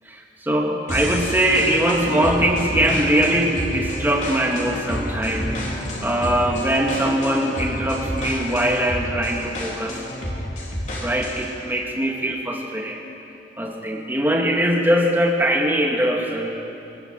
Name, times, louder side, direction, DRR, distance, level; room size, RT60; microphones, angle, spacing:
voice 1, 0.1-10.0 11.0-13.0 13.6-16.6, right 1 dB, 10° right, 0 dB, 2.2 m, -22 dB
sound 1, 0.9-11.5, equal, 40° left, 3.9 m, -29 dB
24.0 x 20.0 x 7.6 m, 2.8 s
head